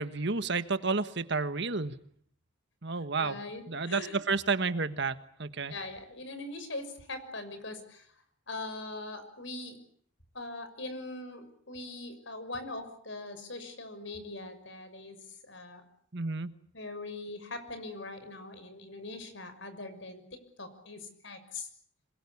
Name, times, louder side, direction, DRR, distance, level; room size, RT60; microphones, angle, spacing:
voice 1, 0.0-1.9 2.8-3.4 3.7-5.7 16.1-16.5, right 4 dB, 55° right, 12 dB, 1.5 m, -31 dB
voice 2, 3.2-4.2 5.7-8.1 8.5-9.8 10.3-15.8 16.7-20.2 20.6-21.7, left 2 dB, 60° left, 9 dB, 6.3 m, -41 dB
27.0 x 22.0 x 8.5 m, 0.63 s
head